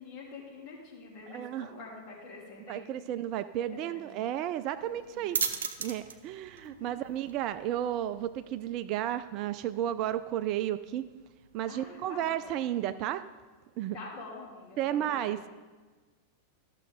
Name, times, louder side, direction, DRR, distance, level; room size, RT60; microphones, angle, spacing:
voice 1, 0.0-3.0 3.7-4.1 4.7-5.4 6.6-7.0 11.7-12.7 13.9-15.4, left 3 dB, 40° left, -3 dB, 3.0 m, -47 dB
voice 2, 1.3-1.7 2.7-5.4 5.8-11.1 11.5-13.2 13.8-14.0 14.8-15.5, right 12 dB, 40° right, 13 dB, 0.4 m, -33 dB
sound 1, 4.7-12.0, right 5 dB, 65° right, 0.7 m, -40 dB
13.5 x 6.6 x 3.8 m, 1.3 s
figure-of-eight pair, 90°, 0 cm